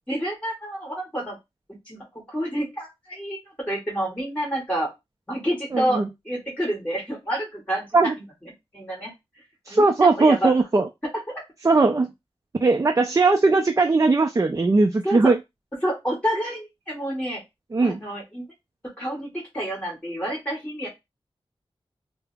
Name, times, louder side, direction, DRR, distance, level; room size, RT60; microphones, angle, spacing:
voice 1, 0.1-1.4 1.9-3.4 3.7-4.9 5.3-8.1 8.7-9.1 9.7-10.5 11.3-11.4 15.0-15.3 15.8-17.4 17.8-18.4 19.0-20.9, right 1 dB, 15° left, 2.0 m, -28 dB
voice 2, 5.7-6.1 7.9-8.1 9.7-10.9 11.6-12.1 12.6-15.4 17.7-18.0, right 3 dB, 35° right, 0.4 m, -19 dB
4.7 x 2.0 x 3.4 m
wide cardioid pair, 90°, 10 cm